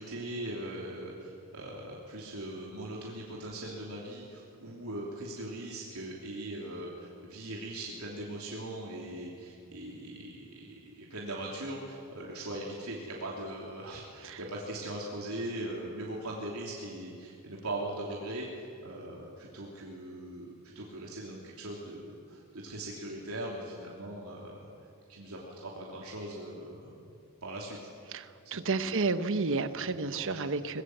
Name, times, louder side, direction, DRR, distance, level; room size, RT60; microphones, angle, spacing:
voice 1, 0.0-20.5 20.7-24.7 25.1-26.9 27.4-27.8 28.5-29.0 29.9-30.5, right 1 dB, 90° right, -3 dB, 3.3 m, -40 dB
voice 2, 28.1-30.8, right 3 dB, 65° right, 12 dB, 1.1 m, -31 dB
24.0 x 20.5 x 8.0 m, 2.5 s
head